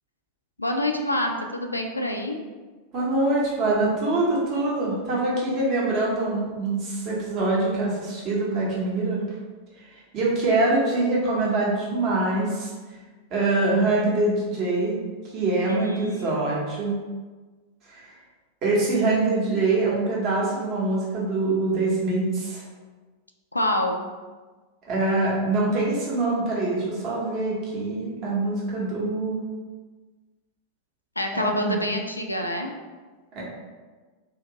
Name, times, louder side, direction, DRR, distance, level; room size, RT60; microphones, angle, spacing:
voice 1, 0.6-2.4 15.7-16.5 23.5-24.1 31.2-32.7, left 1 dB, 85° left, 3 dB, 0.3 m, -27 dB
voice 2, 2.9-9.2 9.9-12.7 13.3-15.0 15.3-16.9 17.9-18.1 18.6-22.6 24.9-29.4 31.3-31.7 33.3-33.4, right 2 dB, 40° right, -5 dB, 1.1 m, -24 dB
2.7 x 2.7 x 2.9 m, 1.3 s
figure-of-eight pair, 90°, 0 cm